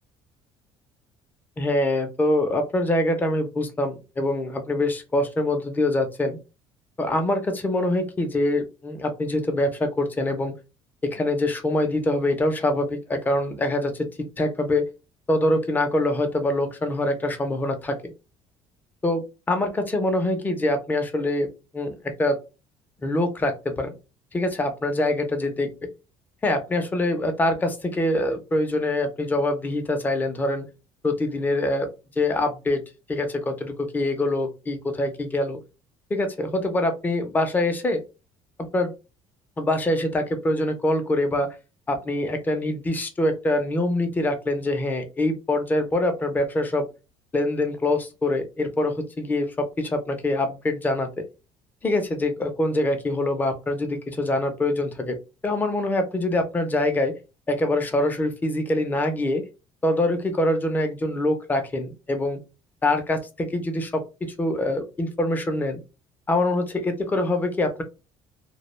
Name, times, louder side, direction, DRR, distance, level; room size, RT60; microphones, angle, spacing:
voice 1, 1.6-6.4 7.0-10.5 11.0-14.1 14.4-14.9 15.3-18.0 19.0-21.5 21.7-22.4 23.0-23.9 24.3-25.7 26.4-30.7 31.0-31.9 32.2-32.8 33.1-35.6 36.1-38.0 38.6-38.9 39.6-41.6 41.9-46.9 47.3-51.2 51.8-55.2 55.4-57.1 57.5-59.4 59.8-62.4 62.8-65.8 66.3-67.8, left 1 dB, 15° left, 6 dB, 0.5 m, -24 dB
2.2 x 2.1 x 3.0 m, 0.29 s
cardioid pair, 150°, 12 cm